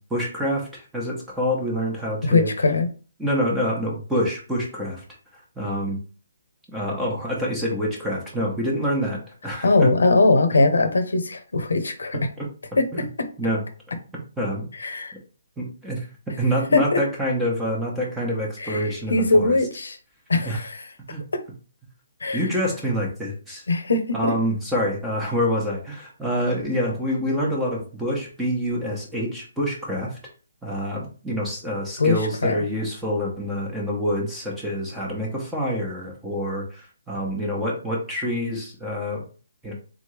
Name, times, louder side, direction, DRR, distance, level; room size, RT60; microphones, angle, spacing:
voice 1, 0.0-2.5 3.2-5.0 5.6-6.0 6.7-9.9 12.4-12.5 12.9-13.1 13.4-13.6 14.4-14.7 15.6-16.0 16.4-19.6 20.4-20.6 21.1-21.2 22.3-23.6 24.1-30.2 30.6-39.2 39.6-39.7, equal, 5° right, -3 dB, 1.0 m, -26 dB
voice 2, 2.2-2.9 9.6-12.2 12.8-13.1 14.7-15.1 16.7-17.0 18.6-20.0 20.3-20.9 22.2-22.5 23.7-24.3 32.0-32.6, left 3 dB, 90° left, 9 dB, 0.8 m, -21 dB
3.7 x 3.4 x 3.3 m, 0.37 s
hypercardioid pair, 165°, 0 cm